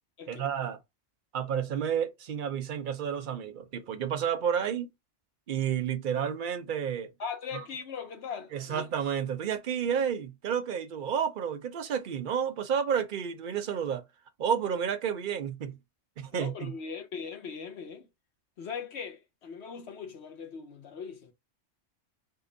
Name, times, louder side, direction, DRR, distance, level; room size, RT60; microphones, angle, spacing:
voice 1, 0.3-0.8 1.3-4.9 5.5-7.1 8.5-14.0 14.4-15.8 16.2-16.7, right 8 dB, 50° right, 0.7 m, -31 dB
voice 2, 7.2-8.8 16.3-18.1 18.6-21.3, left 6 dB, 60° left, 1.1 m, -40 dB
3.8 x 2.1 x 3.8 m
omnidirectional pair, 1.3 m